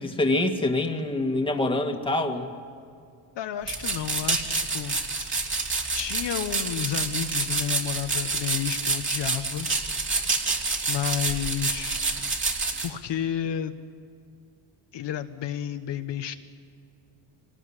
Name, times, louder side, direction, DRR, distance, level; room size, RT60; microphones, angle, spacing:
voice 1, 0.0-2.5, left 2 dB, 10° left, 4 dB, 2.0 m, -25 dB
voice 2, 3.3-5.0 5.5-5.6 6.0-9.7 10.9-12.0 12.8-13.7 14.9-16.3, left 10 dB, 60° left, 7 dB, 1.3 m, -31 dB
sound 1, 3.7-12.9, right 3 dB, 25° right, 3.0 m, -28 dB
25.0 x 19.0 x 9.9 m, 2.3 s
cardioid pair, 125°, 48 cm